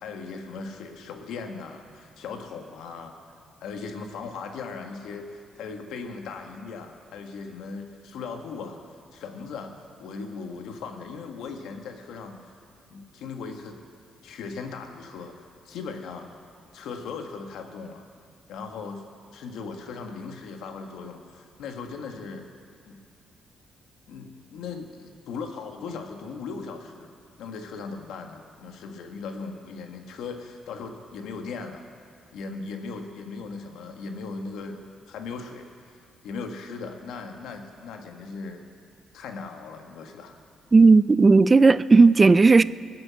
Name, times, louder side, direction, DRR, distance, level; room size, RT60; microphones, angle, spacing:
voice 1, 0.0-3.1 3.6-8.8 9.1-9.7 10.0-12.4 12.9-13.8 14.2-15.4 15.6-16.3 16.7-18.0 18.5-19.0 19.3-22.5 22.8-23.0 24.1-27.1 27.4-31.8 32.3-38.6 39.1-40.4, left 4 dB, 85° left, 1.4 m, -38 dB
voice 2, 40.7-42.6, right 4 dB, 25° right, 0.3 m, -14 dB
20.0 x 7.6 x 7.5 m
cardioid pair, 90°, 0 cm